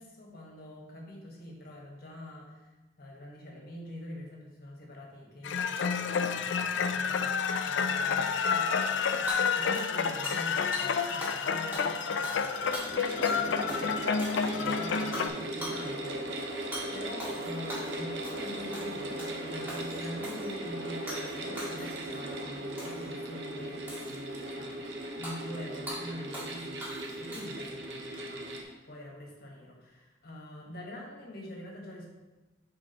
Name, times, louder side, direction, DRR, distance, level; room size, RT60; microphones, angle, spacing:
voice 1, 0.0-2.7 3.0-24.9 25.2-32.1, left 1 dB, 50° left, -2 dB, 1.5 m, -45 dB
sound 1, 5.4-15.3, left 6 dB, 65° left, 0.4 m, -29 dB
Hammer / Shatter, 9.3-10.5 10.7-10.9 11.2-11.5 11.7-13.4 13.7-13.8 14.2-14.7 15.1-15.3 15.6-15.8 16.7-16.9 17.2-17.9 18.2-18.5 18.7-19.4 19.7-20.5 21.1-21.3 21.6-22.2 22.8-23.1 23.9-24.4 25.2-25.4 25.9-26.0 26.3-26.5 26.8-27.7, equal, 10° right, 1.7 m, -41 dB
sound 2, 12.5-28.6, right 1 dB, 60° right, 0.8 m, -38 dB
8.6 x 4.6 x 2.9 m, 1.1 s
head